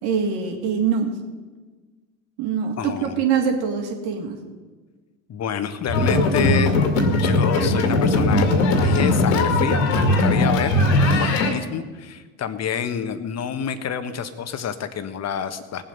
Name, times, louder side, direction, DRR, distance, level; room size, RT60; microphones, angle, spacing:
voice 1, 0.0-1.2 2.4-4.4, right 6 dB, 60° right, 2 dB, 2.8 m, -23 dB
voice 2, 2.8-3.2 5.3-10.7 11.2-15.9, left 8 dB, 35° left, 10 dB, 1.3 m, -28 dB
sound 1, 5.9-11.5, left 2 dB, 70° left, 2.3 m, -19 dB
18.5 x 7.8 x 5.4 m, 1.3 s
hypercardioid pair, 80°, 44 cm